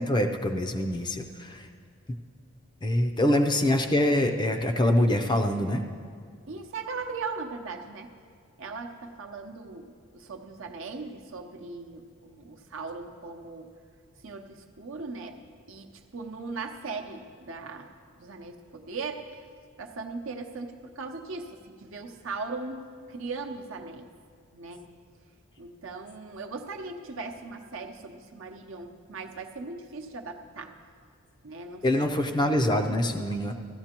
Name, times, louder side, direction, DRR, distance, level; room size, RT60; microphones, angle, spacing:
voice 1, 0.0-1.7 2.8-5.8 31.8-33.5, left 1 dB, 20° left, 4 dB, 0.5 m, -25 dB
voice 2, 6.5-8.1 8.6-13.7 14.2-15.4 15.7-17.9 18.2-19.3 19.8-24.1 24.5-24.9 25.6-30.7 31.4-32.7, right 4 dB, 60° right, 4 dB, 0.8 m, -39 dB
16.0 x 13.5 x 2.9 m, 2.1 s
head